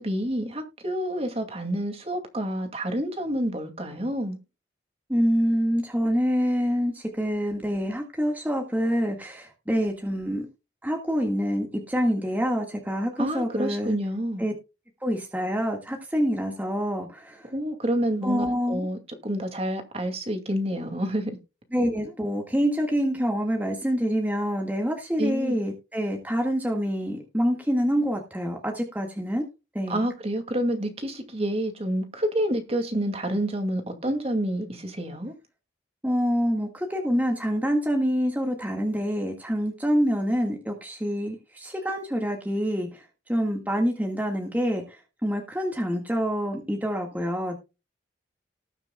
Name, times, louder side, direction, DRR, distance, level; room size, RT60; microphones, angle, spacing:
voice 1, 0.0-4.4 13.2-14.4 17.5-21.4 25.2-25.6 29.9-35.3, right 1 dB, 30° right, 2.3 m, -28 dB
voice 2, 5.1-10.5 10.8-14.0 14.4-14.5 15.0-17.5 18.2-18.9 21.7-29.4 29.7-30.1 36.0-43.0 43.3-47.6, equal, 10° right, 1.7 m, -26 dB
19.0 x 6.7 x 2.3 m
head